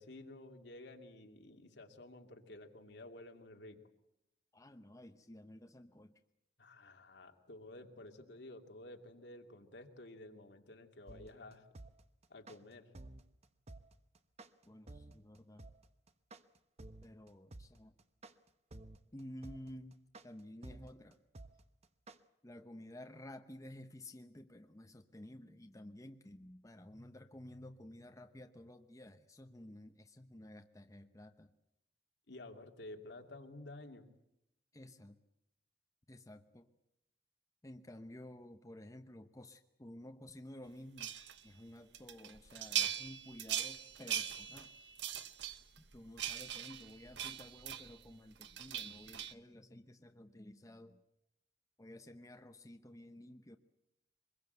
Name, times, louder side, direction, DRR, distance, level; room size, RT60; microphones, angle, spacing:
voice 1, 0.0-3.8 6.6-11.7 12.3-12.9 32.3-34.0, left 2 dB, 70° left, 4 dB, 2.4 m, -52 dB
voice 2, 4.5-6.2 14.6-15.7 17.0-17.9 19.1-21.2 22.4-31.5 34.7-35.2 36.1-36.7 37.6-41.2 41.4-44.7 45.9-51.0 51.8-53.6, left 1 dB, 20° left, 6 dB, 0.9 m, -53 dB
sound 1, 11.1-22.2, right 2 dB, 35° right, 1.0 m, -52 dB
sound 2, 41.0-41.4 41.9-48.1 48.4-49.3, right 10 dB, 80° right, 1.0 m, -40 dB
24.0 x 22.0 x 8.0 m, 0.86 s
head